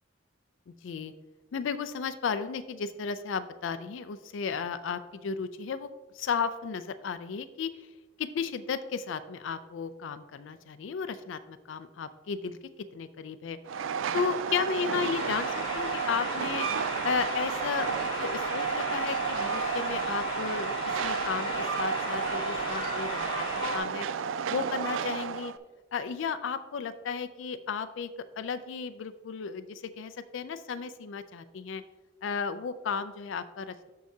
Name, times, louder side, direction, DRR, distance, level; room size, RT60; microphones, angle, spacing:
voice 1, 0.7-1.1 1.5-5.9 6.1-7.7 8.2-12.6 12.9-13.6 14.1-16.7 17.0-17.9 18.2-20.7 21.0-23.4 23.7-24.1 24.5-25.5 25.9-28.1 28.4-31.8 32.2-33.9, left 6 dB, 75° left, 12 dB, 0.4 m, -34 dB
Train, 13.7-25.6, right 7 dB, 90° right, 0.3 m, -32 dB
sound 1, 15.1-23.8, left 2 dB, 25° left, 2.1 m, -36 dB
12.5 x 4.7 x 2.7 m, 1.2 s
head